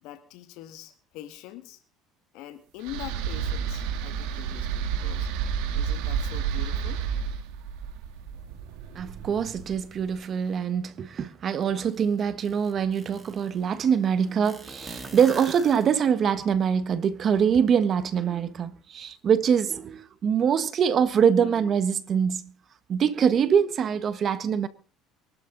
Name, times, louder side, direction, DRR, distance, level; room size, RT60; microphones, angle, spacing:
voice 1, 0.0-1.8 2.3-5.3 5.7-7.0, left 13 dB, 75° left, 1.9 m, -43 dB
sound 1, 2.8-10.0, right 7 dB, 80° right, 1.9 m, -31 dB
voice 2, 8.9-22.4 22.9-24.7, right 7 dB, 40° right, 1.3 m, -24 dB
sound 2, 11.9-12.0 12.4-13.5 14.4-16.3, right 2 dB, 15° right, 3.7 m, -42 dB
23.5 x 12.0 x 4.0 m
cardioid pair, 115°, 0 cm